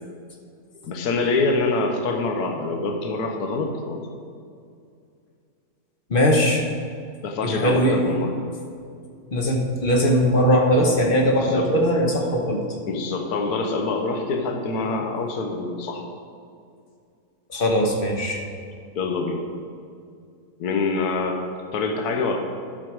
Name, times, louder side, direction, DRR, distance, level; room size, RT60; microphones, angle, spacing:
voice 1, 0.9-4.0 7.2-8.3 11.3-11.7 12.9-16.0 18.9-19.4 20.6-21.4 21.7-22.4, left 3 dB, 75° left, 4 dB, 1.4 m, -25 dB
voice 2, 6.1-6.7 7.4-8.0 9.3-12.6 17.5-18.4, equal, 40° left, 2 dB, 1.2 m, -20 dB
11.5 x 6.7 x 4.7 m, 2.4 s
omnidirectional pair, 1.7 m